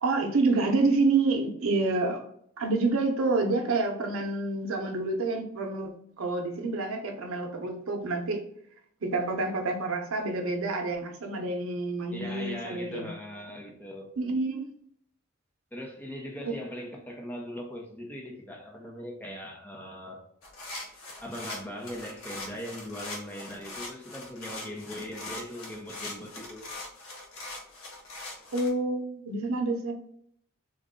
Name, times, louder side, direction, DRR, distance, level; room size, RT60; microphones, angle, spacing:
voice 1, 0.0-2.2 2.6-8.4 9.0-13.1 14.2-14.7 16.5-16.6 28.5-29.9, right 3 dB, 85° right, 0.7 m, -28 dB
voice 2, 12.1-14.1 15.7-20.2 21.2-26.7, equal, 10° left, 0.6 m, -40 dB
sound 1, 20.4-28.7, left 2 dB, 90° left, 0.9 m, -41 dB
3.7 x 2.2 x 3.6 m
head